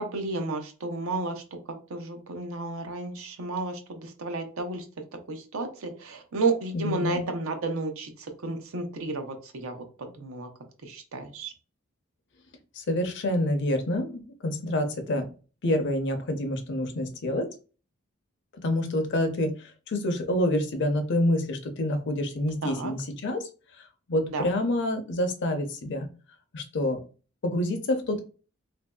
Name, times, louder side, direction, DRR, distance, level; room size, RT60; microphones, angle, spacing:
voice 1, 0.0-1.6 1.9-4.8 5.3-10.5 10.8-11.5 22.6-22.9 24.3-24.5, right 3 dB, 90° right, 6 dB, 0.6 m, -32 dB
voice 2, 6.7-7.2 12.7-15.3 15.6-17.5 18.6-23.5 23.8-26.1 26.5-27.0 27.4-28.2, left 1 dB, 60° left, 7 dB, 0.6 m, -27 dB
2.9 x 2.6 x 2.2 m, 0.35 s
head